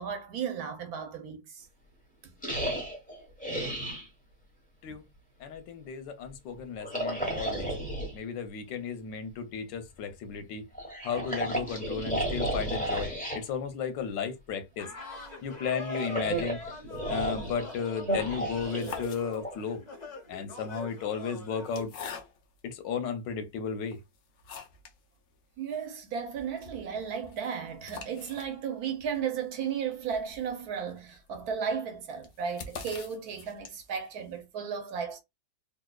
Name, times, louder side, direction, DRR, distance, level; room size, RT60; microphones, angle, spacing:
voice 1, 0.0-1.7 2.2-2.3 25.6-35.2, right 7 dB, 65° right, 1.1 m, -34 dB
sound 1, 2.4-4.1 6.8-8.1 10.7-13.4 15.6-19.5, right 1 dB, 5° left, 1.0 m, -33 dB
voice 2, 5.4-7.7 8.1-10.6 11.0-14.9 15.4-16.6 17.1-19.8 20.3-21.9 22.6-24.0, left 6 dB, 85° left, 1.5 m, -34 dB
sound 2, 14.8-21.9, left 3 dB, 30° left, 0.8 m, -43 dB
sound 3, 18.5-19.8 20.6-22.7 23.3-23.4 23.9-25.0 25.3-25.4 25.7-25.8 26.1-34.0, left 5 dB, 60° left, 0.9 m, -46 dB
4.0 x 2.6 x 2.3 m
omnidirectional pair, 1.9 m